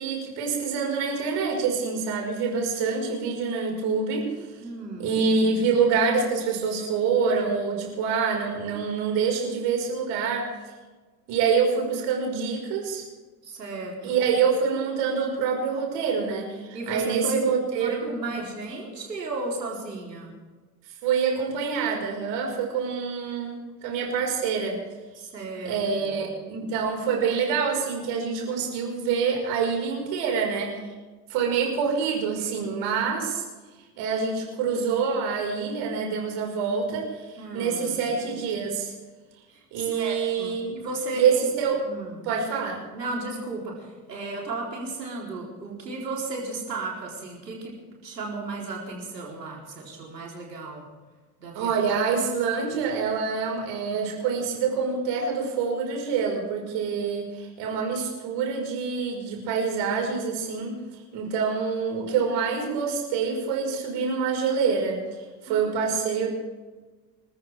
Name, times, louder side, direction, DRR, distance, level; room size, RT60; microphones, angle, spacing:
voice 1, 0.0-4.5 5.0-10.5 11.3-13.0 14.0-18.0 18.4-18.5 21.0-24.8 25.7-30.7 31.3-33.4 34.0-38.9 39.7-40.7 41.1-41.8 42.2-42.8 51.5-60.7 61.1-65.0 65.4-66.3, right 5 dB, 60° right, 1 dB, 5.5 m, -26 dB
voice 2, 4.6-5.2 13.4-14.1 16.7-17.5 17.8-20.3 25.2-26.1 37.4-38.0 39.5-41.5 41.8-42.3 42.9-47.8 48.0-50.8 51.4-51.7 65.5-65.9, right 2 dB, 90° right, -2 dB, 4.1 m, -34 dB
26.5 x 14.5 x 3.6 m, 1.3 s
hypercardioid pair, 65°, 48 cm